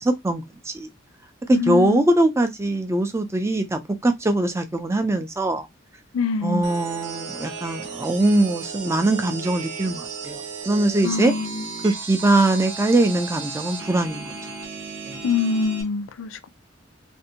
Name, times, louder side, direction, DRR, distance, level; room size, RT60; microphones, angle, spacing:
voice 1, 0.0-0.9 1.5-5.7 6.4-11.3 11.8-14.4 15.1-15.2, right 2 dB, 15° right, 0.4 m, -22 dB
voice 2, 1.5-2.0 6.1-6.7 11.0-11.7 15.2-16.5, left 5 dB, 85° left, 0.4 m, -24 dB
sound 1, 6.6-15.8, right 4 dB, 70° right, 0.7 m, -35 dB
2.6 x 2.1 x 2.7 m
head